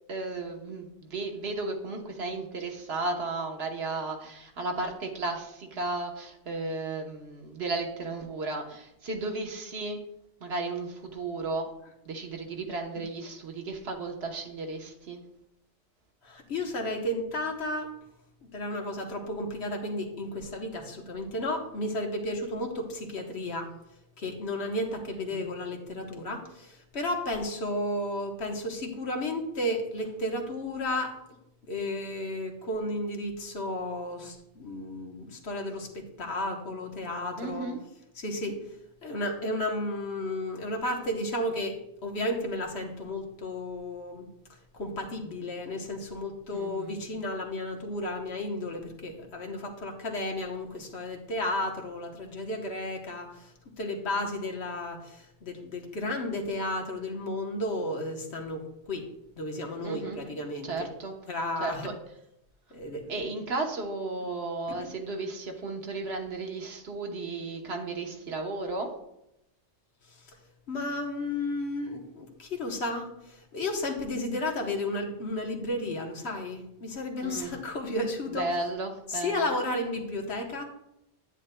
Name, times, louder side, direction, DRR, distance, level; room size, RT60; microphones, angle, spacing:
voice 1, 0.1-10.0 10.4-11.7 12.1-15.2 25.3-25.5 37.4-37.8 46.5-47.0 59.8-60.2 60.6-61.2 61.6-61.9 63.1-68.9 77.2-77.5 78.3-79.6, right 3 dB, 70° right, 2 dB, 1.3 m, -34 dB
voice 2, 16.2-17.9 18.5-23.7 24.2-31.2 31.7-37.7 38.1-38.8 39.0-41.8 42.0-44.3 44.7-53.5 53.8-59.1 59.4-60.9 61.3-61.9 62.7-63.2 64.7-64.9 70.1-70.4 70.7-78.6 79.1-80.6, left 1 dB, 70° left, 2 dB, 1.4 m, -33 dB
9.8 x 9.0 x 2.2 m, 0.85 s
omnidirectional pair, 1.1 m